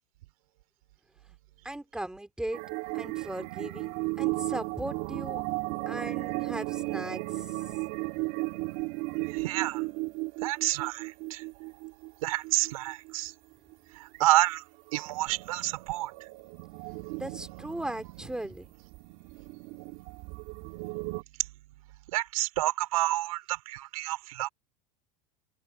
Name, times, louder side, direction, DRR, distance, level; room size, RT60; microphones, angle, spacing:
voice 1, 1.6-2.6 2.9-5.4 5.9-7.6 8.1-8.2 17.2-18.7, right 1 dB, 5° right, 2.9 m, -38 dB
sound 1, 2.5-13.1 13.7-13.8 14.1-14.3 14.7-21.2, right 24 dB, 60° right, 3.8 m, -35 dB
voice 2, 9.3-9.8 10.4-11.4 12.2-13.3 14.0-14.6 14.9-16.1 22.1-24.5, right 17 dB, 80° right, 4.4 m, -29 dB
open air
supercardioid pair, 115°, 18 cm